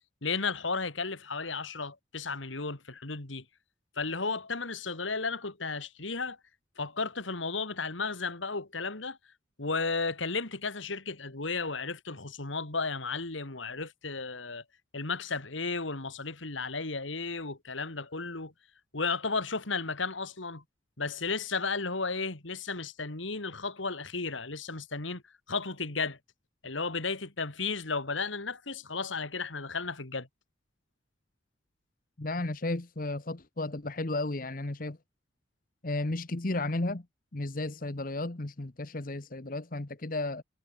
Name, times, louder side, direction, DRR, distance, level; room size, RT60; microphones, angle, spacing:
voice 1, 0.2-3.4 4.0-6.4 6.8-9.2 9.6-14.6 14.9-18.5 18.9-20.6 21.0-25.2 25.5-26.2 26.6-30.3, left 4 dB, 85° left, 2.5 m, -34 dB
voice 2, 32.2-35.0 35.8-37.1 37.3-40.4, left 2 dB, 45° left, 1.1 m, -33 dB
head